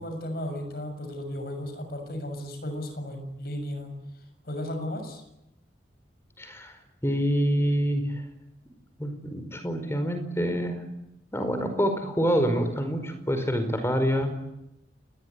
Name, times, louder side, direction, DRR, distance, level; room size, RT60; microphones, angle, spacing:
voice 1, 0.0-3.9 4.4-5.2, left 1 dB, 55° left, 6 dB, 6.7 m, -34 dB
voice 2, 6.4-6.7 7.0-8.1 9.0-10.8 11.3-14.4, equal, 15° left, 8 dB, 4.9 m, -26 dB
29.0 x 20.0 x 9.7 m, 0.87 s
head